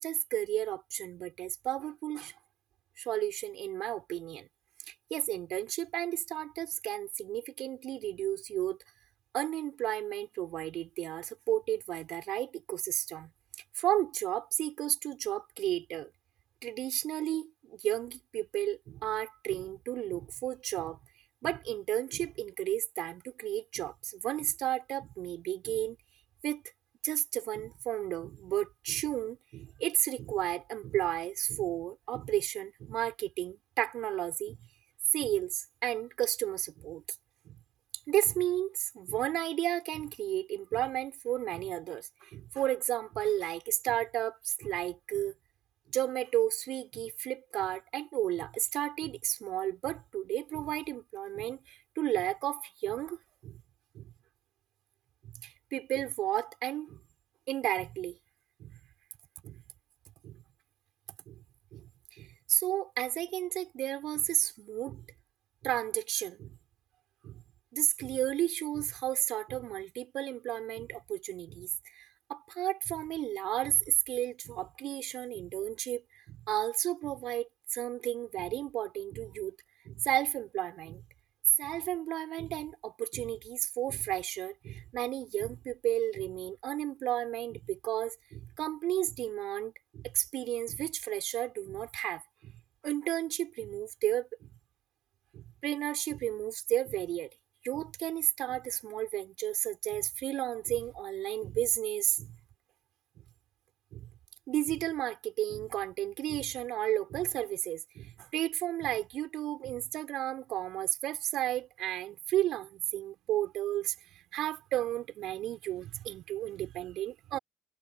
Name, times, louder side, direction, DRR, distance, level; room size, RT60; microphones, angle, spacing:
voice 1, 0.0-2.3 3.0-4.5 4.9-8.8 9.3-13.3 13.8-16.1 16.6-21.0 21.4-26.0 26.4-26.6 27.0-34.6 35.1-37.0 37.4-37.6 38.1-45.3 45.9-53.2 53.4-53.6 53.9-54.1 55.4-57.0 57.5-58.2 58.6-58.7 59.4-59.6 60.2-60.4 61.3-61.4 61.7-61.8 62.1-65.0 65.6-66.6 67.2-67.4 67.7-79.5 79.8-81.0 81.6-92.5 92.8-94.3 95.3-97.3 97.6-102.4 103.9-104.1 104.5-117.4, right 13 dB, 60° right, 5.0 m, -33 dB
hypercardioid pair, 55°, 0 cm